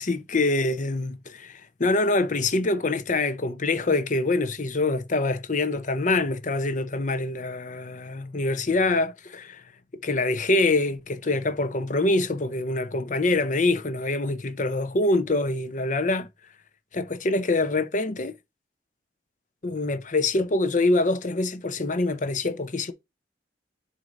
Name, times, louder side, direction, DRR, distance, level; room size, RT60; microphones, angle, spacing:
voice 1, 0.0-9.6 10.0-16.3 16.9-18.3 19.6-22.9, left 2 dB, 45° left, 0.8 m, -25 dB
7.7 x 2.8 x 5.2 m
head